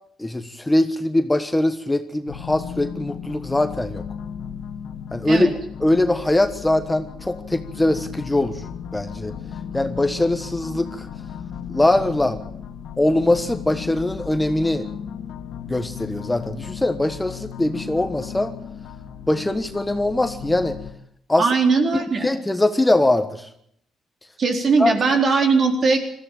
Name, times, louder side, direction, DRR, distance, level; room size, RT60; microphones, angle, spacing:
voice 1, 0.2-4.0 5.1-5.5 5.8-8.6 8.9-9.3 9.7-11.1 11.7-12.4 13.0-14.9 15.7-18.5 19.3-20.8 21.3-21.5 21.9-23.5 24.8-24.9, left 1 dB, 10° left, 9 dB, 1.4 m, -22 dB
sound 1, 2.3-20.9, left 8 dB, 80° left, 1.6 m, -35 dB
voice 2, 21.4-22.3 24.4-26.0, right 4 dB, 50° right, 4 dB, 4.1 m, -19 dB
19.5 x 14.5 x 9.1 m, 0.71 s
cardioid pair, 90°, 0 cm